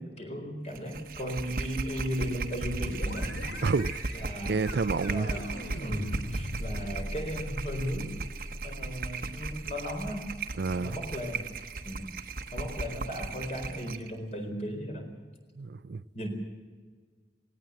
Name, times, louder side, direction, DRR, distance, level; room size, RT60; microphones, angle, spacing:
voice 1, 0.0-3.4 4.1-4.6 5.1-5.5 5.8-8.1 8.6-10.3 10.7-11.4 11.8-12.1 12.5-15.1 16.1-16.3, equal, 35° left, 4.3 m, -36 dB
sound 1, 0.7-14.1, right 3 dB, 50° right, 1.0 m, -37 dB
sound 2, 2.7-12.2, equal, 75° left, 3.0 m, -41 dB
voice 2, 3.6-4.0 4.5-5.3 10.6-11.0 15.6-16.0, right 4 dB, 65° right, 0.5 m, -29 dB
18.5 x 18.0 x 7.8 m
head